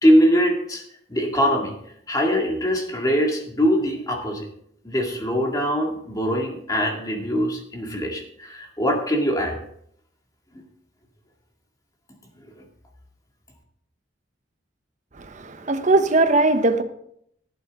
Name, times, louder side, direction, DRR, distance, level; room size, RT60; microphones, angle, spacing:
voice 1, 0.0-0.8 1.1-1.7 2.1-4.5 4.8-9.6 12.6-12.7, equal, 20° left, 2.0 m, -22 dB
voice 2, 15.2-16.8, right 2 dB, 40° right, 0.9 m, -20 dB
15.0 x 8.5 x 3.6 m
head